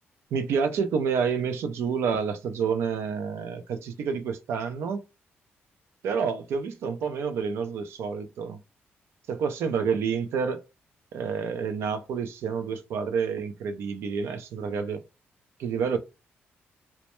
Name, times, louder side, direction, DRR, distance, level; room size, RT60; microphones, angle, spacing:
voice 1, 0.3-5.0 6.0-8.6 9.3-10.6 11.1-15.0 15.6-16.0, right 6 dB, 80° right, 0.4 m, -28 dB
2.1 x 2.1 x 2.9 m
cardioid pair, 90°, 4 cm